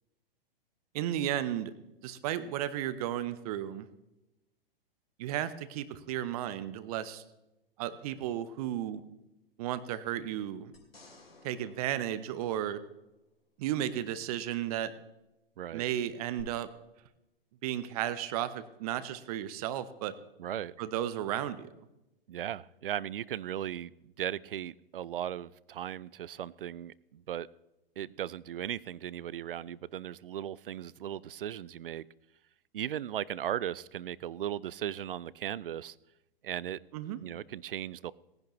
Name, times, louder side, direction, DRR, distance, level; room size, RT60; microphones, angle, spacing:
voice 1, 0.9-1.7 2.0-3.9 5.2-7.2 7.8-9.0 9.6-10.7 11.4-12.8 13.6-14.9 15.7-16.7 17.6-20.1 20.8-21.7 36.9-37.2, right 11 dB, 40° right, 14 dB, 0.8 m, -34 dB
sound 1, 10.7-13.2 16.4-16.5, left 3 dB, 85° left, 3.4 m, -57 dB
voice 2, 20.4-20.7 22.3-27.5 28.0-32.1 32.7-36.0 36.4-36.8 37.2-38.1, right 10 dB, 65° right, 22 dB, 0.5 m, -37 dB
18.0 x 10.5 x 3.1 m, 0.94 s
figure-of-eight pair, 110°, 29 cm